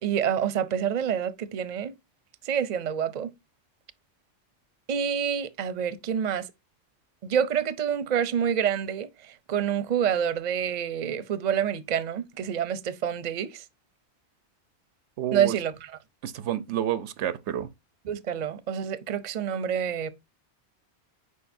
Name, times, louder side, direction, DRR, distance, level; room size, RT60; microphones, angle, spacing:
voice 1, 0.0-1.9 2.4-3.3 4.9-6.5 7.2-9.1 9.5-13.6 15.3-16.0 18.0-20.1, right 8 dB, 45° right, 0.7 m, -27 dB
voice 2, 15.2-15.5 16.2-17.7, right 11 dB, 90° right, 1.0 m, -29 dB
8.4 x 5.0 x 2.6 m
omnidirectional pair, 1.1 m